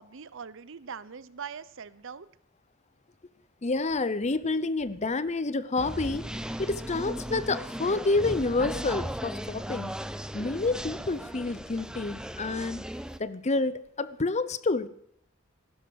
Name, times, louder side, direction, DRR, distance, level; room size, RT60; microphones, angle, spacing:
voice 1, 0.0-2.3, right 6 dB, 65° right, 18 dB, 0.7 m, -42 dB
voice 2, 3.6-6.2 6.6-10.0 10.3-12.8 13.2-14.9, left 3 dB, 35° left, 16 dB, 0.7 m, -28 dB
sound 1, 5.8-13.2, equal, 5° right, 0.6 m, -37 dB
15.5 x 12.0 x 7.0 m, 0.67 s
head